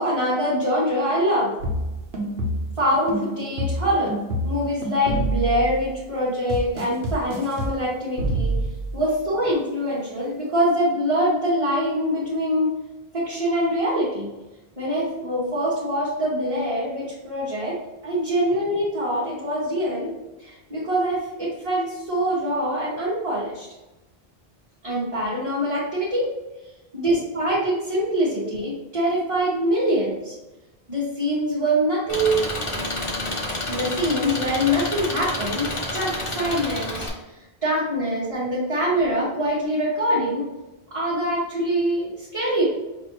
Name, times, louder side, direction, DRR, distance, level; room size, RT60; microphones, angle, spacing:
voice 1, 0.0-1.5 2.8-4.1 4.4-8.5 8.9-12.7 13.1-14.3 14.8-20.1 20.4-23.7 24.8-26.3 26.9-30.3 30.9-32.5 33.7-37.1 37.6-40.5 40.9-42.6, equal, 35° right, -9 dB, 1.2 m, -24 dB
sound 1, 1.6-2.8 3.1-5.9 6.5-7.8 8.2-9.0, right 1 dB, 75° right, 1.0 m, -27 dB
Engine, 32.1-37.1, left 1 dB, 35° left, 0.8 m, -29 dB
6.0 x 2.6 x 3.0 m, 1.0 s
omnidirectional pair, 1.1 m